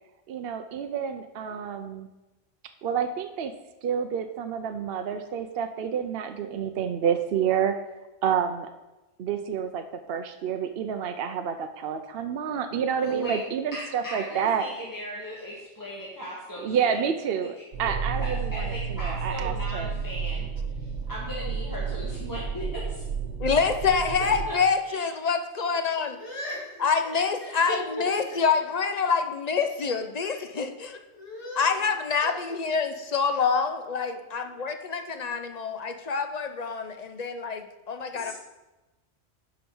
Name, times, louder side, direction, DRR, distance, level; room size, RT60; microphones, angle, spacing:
voice 1, 0.3-2.1 2.8-3.5 3.8-7.8 8.2-8.7 9.2-14.6 16.6-19.9, right 7 dB, 60° right, 7 dB, 0.7 m, -29 dB
voice 2, 13.0-13.4 13.7-17.0 17.4-17.9 18.2-20.5 20.8-22.8 24.5-24.6 24.8-25.1 27.4-28.1 38.1-38.3, equal, 15° left, -6 dB, 1.6 m, -37 dB
sound 1, 17.7-24.5, right 5 dB, 85° right, 1.2 m, -32 dB
voice 3, 23.4-26.2 26.8-31.0 31.6-38.3, left 5 dB, 45° left, 7 dB, 0.6 m, -26 dB
voice 4, 26.1-27.5 28.3-28.4 31.1-31.8 32.2-32.3, left 1 dB, 65° left, -3 dB, 2.5 m, -39 dB
10.5 x 5.1 x 5.4 m, 1.1 s
omnidirectional pair, 1.2 m